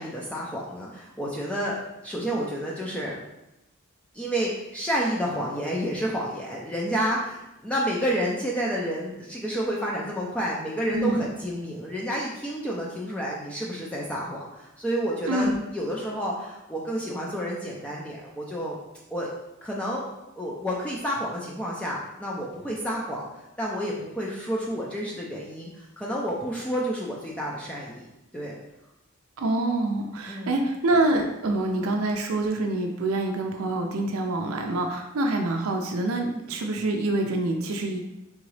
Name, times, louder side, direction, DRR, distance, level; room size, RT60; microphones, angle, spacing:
voice 1, 0.0-3.2 4.1-18.8 19.1-19.3 19.6-20.1 20.4-28.1 28.3-28.6 30.3-30.5, equal, 5° left, -4 dB, 0.4 m, -30 dB
voice 2, 10.9-11.3 15.3-15.6 29.4-38.0, right 2 dB, 85° right, 2 dB, 0.5 m, -26 dB
3.9 x 3.6 x 3.2 m, 0.94 s
head